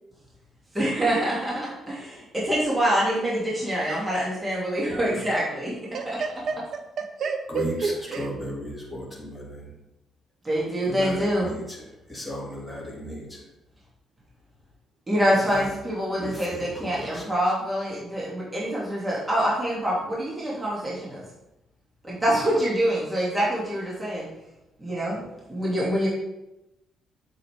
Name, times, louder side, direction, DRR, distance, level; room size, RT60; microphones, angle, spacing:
voice 1, 0.7-5.7 6.1-6.2 10.4-11.6 15.1-21.2 22.0-24.3 24.8-25.2 25.5-26.1, equal, 20° right, -6 dB, 3.1 m, -25 dB
voice 2, 5.9-8.3, right 5 dB, 65° right, 7 dB, 1.2 m, -30 dB
voice 3, 7.5-9.7 10.9-13.4 15.5-15.7 16.2-17.5, equal, ahead, -5 dB, 3.1 m, -35 dB
8.3 x 7.5 x 3.8 m, 0.92 s
cardioid pair, 90°, 0 cm